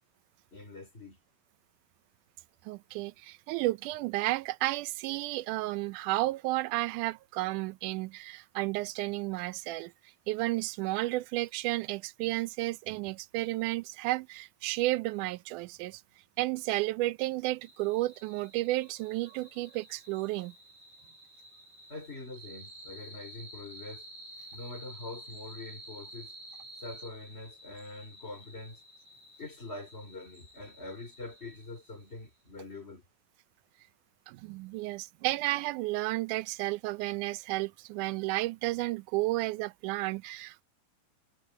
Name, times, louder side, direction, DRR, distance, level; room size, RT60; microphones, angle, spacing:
voice 1, 0.5-1.2 21.9-24.0 24.5-26.3 26.8-28.8 29.4-33.0, left 2 dB, 20° left, 3.0 m, -44 dB
voice 2, 2.7-9.9 10.3-16.0 16.4-20.5 34.3-40.6, right 18 dB, 80° right, 2.0 m, -32 dB
sound 1, 17.6-32.1, right 1 dB, 50° right, 7.1 m, -51 dB
omnidirectional pair, 3.7 m